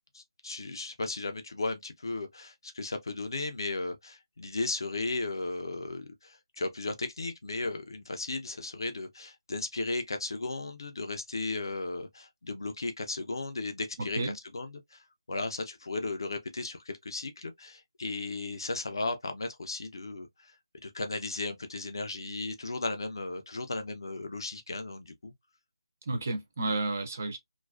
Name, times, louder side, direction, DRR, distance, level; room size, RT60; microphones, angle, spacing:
voice 1, 0.1-20.5 20.8-25.3, left 3 dB, 50° left, 0.5 m, -35 dB
voice 2, 14.0-14.3 26.1-27.4, right 2 dB, 25° right, 0.3 m, -31 dB
2.4 x 2.2 x 2.3 m
figure-of-eight pair, 180°, 3 cm